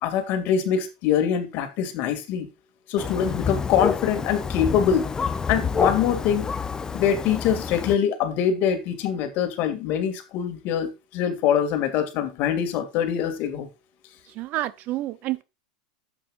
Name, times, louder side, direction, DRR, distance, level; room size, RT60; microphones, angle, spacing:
voice 1, 0.0-2.5 2.9-5.1 5.5-6.5 6.9-13.7, left 8 dB, 50° left, 2.5 m, -24 dB
Thunder, 3.0-7.9, left 5 dB, 15° left, 0.6 m, -28 dB
voice 2, 14.4-15.4, right 15 dB, 45° right, 0.7 m, -29 dB
11.5 x 8.3 x 2.5 m
hypercardioid pair, 110°, 4 cm